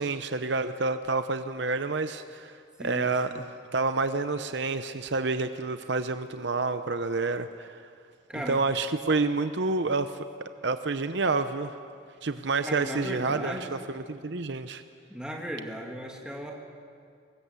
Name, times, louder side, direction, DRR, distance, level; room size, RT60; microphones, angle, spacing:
voice 1, 0.0-2.5 2.8-3.4 3.7-7.8 8.3-11.8 12.2-14.8, right 3 dB, 60° right, 10 dB, 0.8 m, -29 dB
voice 2, 2.8-3.4 8.3-8.6 12.6-13.7 15.1-16.5, equal, 5° right, -1 dB, 2.6 m, -36 dB
24.0 x 20.0 x 8.3 m, 2.3 s
head